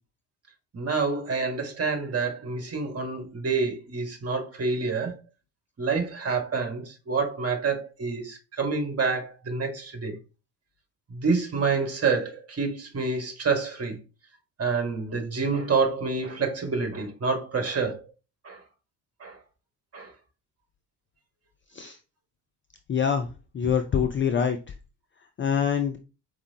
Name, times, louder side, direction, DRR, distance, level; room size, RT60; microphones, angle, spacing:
voice 1, 0.7-5.2 5.8-10.2 11.1-14.0 14.6-18.0 18.4-18.6 19.2-19.4 19.9-20.1, right 4 dB, 30° right, 1.6 m, -28 dB
voice 2, 22.9-23.3 23.5-24.6 25.4-26.0, left 7 dB, 25° left, 0.5 m, -24 dB
4.9 x 3.1 x 2.8 m
figure-of-eight pair, 45°, 47 cm